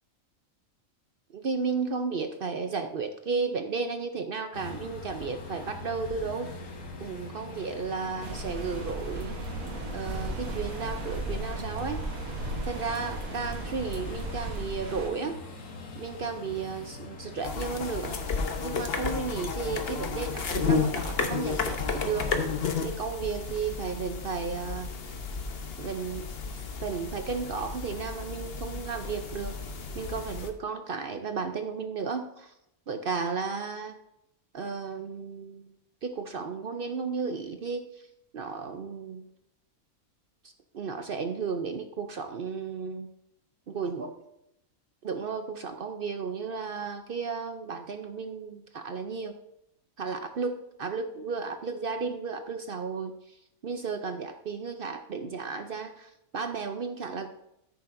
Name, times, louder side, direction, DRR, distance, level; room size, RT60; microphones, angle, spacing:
voice 1, 1.3-6.5 7.0-9.3 9.9-12.0 12.6-15.4 15.9-18.2 18.6-22.3 22.8-24.9 25.8-26.3 26.8-29.6 29.9-32.5 32.9-34.0 34.5-35.8 36.0-38.1 38.3-39.3 40.4-43.1 43.7-44.1 45.0-49.4 50.0-53.4 53.6-57.3, right 5 dB, 55° right, 7 dB, 0.6 m, -34 dB
sound 1, 4.5-22.7, left 3 dB, 90° left, 1.8 m, -42 dB
sound 2, 8.2-15.1, right 2 dB, 75° right, 1.6 m, -36 dB
sound 3, 17.4-30.5, left 5 dB, 50° left, 1.0 m, -32 dB
13.5 x 6.9 x 2.6 m, 0.82 s
omnidirectional pair, 1.5 m